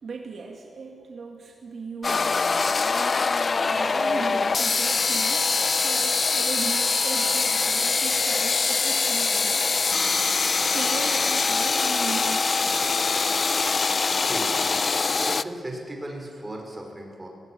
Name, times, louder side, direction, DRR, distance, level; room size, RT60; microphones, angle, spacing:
voice 1, 0.0-2.8 3.7-5.5 5.8-9.7 10.7-13.1, right 4 dB, 60° right, 1 dB, 2.1 m, -37 dB
sound 1, 2.0-15.4, left 4 dB, 35° left, 0.5 m, -23 dB
voice 2, 14.1-14.6 15.0-17.3, right 1 dB, 15° right, 1 dB, 5.0 m, -37 dB
19.5 x 17.5 x 9.8 m, 2.3 s
wide cardioid pair, 135°, 0 cm